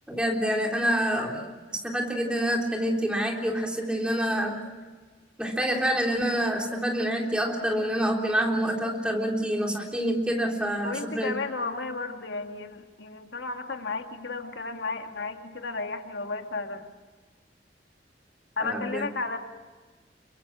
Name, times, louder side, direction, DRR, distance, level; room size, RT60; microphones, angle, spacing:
voice 1, 0.1-4.7 5.4-11.3 18.6-19.0, equal, 5° right, 0 dB, 3.7 m, -27 dB
voice 2, 10.8-16.9 18.6-19.4, left 3 dB, 85° left, 5 dB, 2.0 m, -33 dB
28.5 x 23.5 x 6.1 m, 1.4 s
head